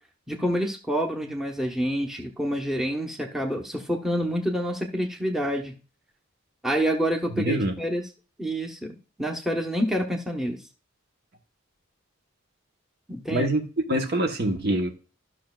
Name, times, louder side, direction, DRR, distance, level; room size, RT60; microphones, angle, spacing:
voice 1, 0.3-5.7 6.6-8.0 8.4-10.6 13.1-13.5, equal, ahead, 3 dB, 0.9 m, -27 dB
voice 2, 7.4-7.7 13.3-14.9, right 1 dB, 50° right, 4 dB, 1.1 m, -25 dB
13.0 x 6.2 x 2.4 m, 0.35 s
head